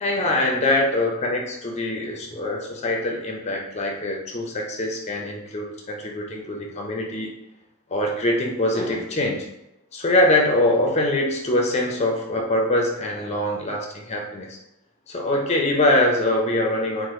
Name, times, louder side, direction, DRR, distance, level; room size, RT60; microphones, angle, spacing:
voice 1, 0.0-7.3 7.9-9.5 9.9-14.6 15.1-17.1, left 1 dB, 30° left, 1 dB, 0.5 m, -23 dB
3.0 x 2.0 x 3.0 m, 0.87 s
head